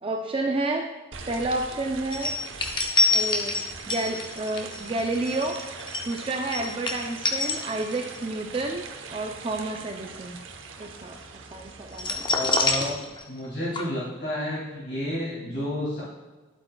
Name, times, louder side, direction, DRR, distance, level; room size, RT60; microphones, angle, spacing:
voice 1, 0.0-0.9 1.3-2.3 3.1-3.6 3.9-5.6 6.0-10.4 10.8-12.2, right 2 dB, 25° right, 2 dB, 0.4 m, -30 dB
sound 1, 1.1-12.9, right 5 dB, 75° right, 0.8 m, -41 dB
sound 2, 2.1-8.2 8.5-8.8 11.9-13.5 13.7-13.8, left 2 dB, 25° left, 0.7 m, -26 dB
voice 2, 12.3-12.9 13.3-16.0, left 1 dB, 55° left, -7 dB, 2.5 m, -30 dB
11.0 x 8.1 x 2.3 m, 1.3 s
head